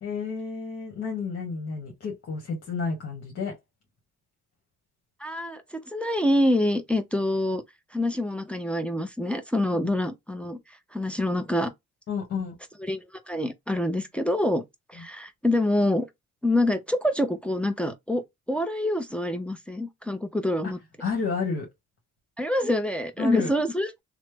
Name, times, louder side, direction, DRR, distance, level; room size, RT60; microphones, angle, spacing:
voice 1, 0.0-3.5 12.1-12.6 21.0-21.7 23.2-23.5, left 5 dB, 50° left, 1.3 m, -30 dB
voice 2, 5.2-7.6 7.9-10.6 10.9-11.7 12.8-14.6 14.9-16.1 16.4-18.2 18.5-20.8 22.4-23.9, left 1 dB, 5° left, 0.6 m, -26 dB
3.1 x 2.0 x 3.3 m
cardioid pair, 90°, 30 cm